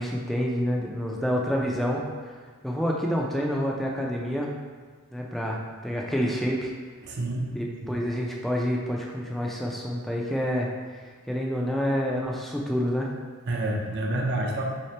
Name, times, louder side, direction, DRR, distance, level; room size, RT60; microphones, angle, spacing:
voice 1, 0.0-2.3 2.6-4.5 5.1-6.7 7.5-11.0 11.3-13.1, equal, ahead, -2 dB, 0.4 m, -28 dB
voice 2, 7.0-8.0 13.5-14.6, right 1 dB, 50° right, 0 dB, 0.5 m, -29 dB
3.6 x 2.8 x 3.2 m, 1.5 s
head